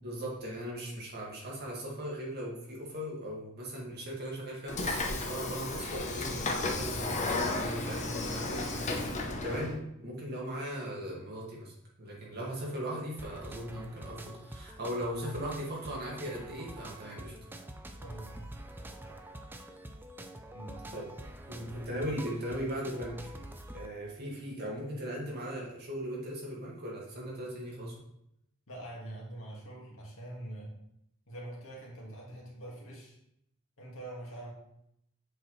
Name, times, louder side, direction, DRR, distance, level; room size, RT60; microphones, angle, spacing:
voice 1, 0.0-17.3 20.9-21.1 21.5-23.3 23.7-27.9, equal, 50° right, -4 dB, 2.0 m, -38 dB
Train / Sliding door, 4.7-9.7, left 2 dB, 35° left, 0.8 m, -33 dB
sound 1, 13.2-23.9, right 1 dB, 10° right, 0.5 m, -46 dB
voice 2, 18.0-18.5 20.5-20.9 28.7-30.7 31.3-33.2 33.8-34.5, right 1 dB, 65° left, -2 dB, 1.9 m, -44 dB
7.5 x 4.6 x 3.2 m, 0.77 s
head